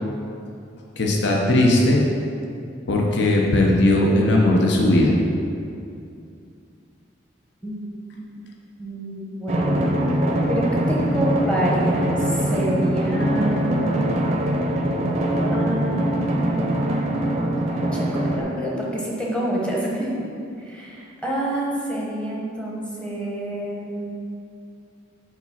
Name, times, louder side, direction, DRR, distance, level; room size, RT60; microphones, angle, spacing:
voice 1, 1.0-2.0 2.9-5.2, left 1 dB, 60° left, -1 dB, 0.7 m, -18 dB
voice 2, 8.8-9.9 10.5-14.1 15.5-16.2 16.5-17.4 17.7-20.3 20.6-24.0, right 1 dB, 5° left, -4 dB, 0.9 m, -27 dB
Drum, 9.5-18.4, right 1 dB, 35° right, 0.5 m, -23 dB
4.9 x 4.0 x 5.7 m, 2.5 s
head